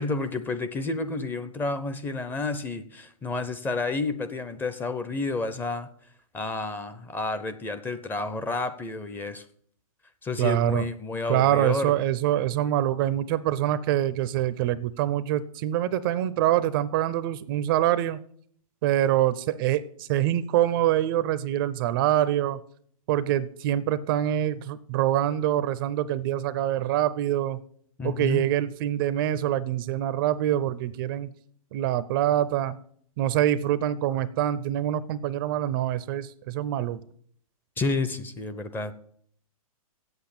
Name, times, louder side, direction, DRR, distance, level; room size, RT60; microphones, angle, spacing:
voice 1, 0.0-5.9 6.3-9.5 10.2-11.9 28.0-28.4 37.8-39.0, left 3 dB, 10° left, 10 dB, 0.6 m, -30 dB
voice 2, 10.4-10.9 11.3-18.2 18.8-22.6 23.1-27.6 28.0-31.3 31.7-32.8 33.2-37.0, right 12 dB, 40° right, 16 dB, 0.5 m, -25 dB
8.0 x 8.0 x 8.8 m, 0.62 s
hypercardioid pair, 135°, 19 cm